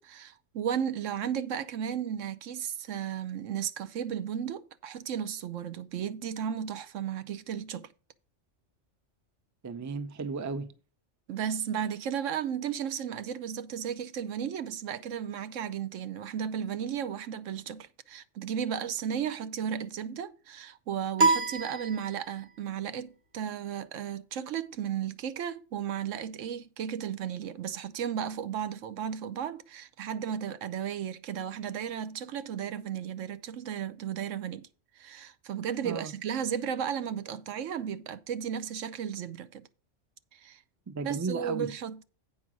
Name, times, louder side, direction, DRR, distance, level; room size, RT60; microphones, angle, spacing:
voice 1, 0.0-7.9 11.3-34.7 35.0-39.7 40.3-40.6 41.0-42.0, right 8 dB, 80° right, 1.1 m, -34 dB
voice 2, 9.6-10.7 35.8-36.1 40.9-41.7, right 4 dB, 25° right, 0.3 m, -34 dB
sound 1, 21.2-22.6, right 3 dB, 45° right, 1.4 m, -27 dB
8.6 x 4.9 x 6.1 m
omnidirectional pair, 1.3 m